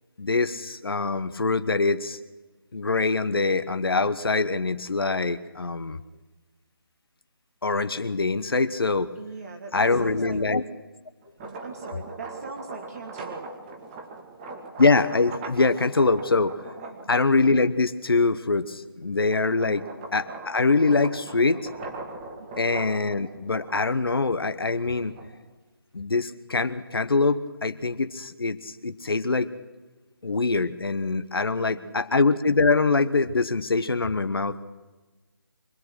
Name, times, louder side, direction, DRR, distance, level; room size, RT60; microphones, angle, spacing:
voice 1, 0.2-2.2 2.7-6.0 7.6-9.1 9.7-10.6 14.8-16.6 17.1-19.8 20.1-21.6 22.6-25.1 25.9-29.5 30.2-34.6, left 3 dB, 75° left, 10 dB, 1.1 m, -24 dB
voice 2, 9.2-10.4 11.4-13.5 16.8-17.1 19.6-19.9 22.4-22.7 31.3-31.9, right 4 dB, 40° right, 4 dB, 1.7 m, -41 dB
sound 1, 11.2-17.8 18.4-25.5, right 3 dB, 20° right, 2.2 m, -41 dB
25.0 x 18.0 x 6.2 m, 1.3 s
figure-of-eight pair, 155°, 12 cm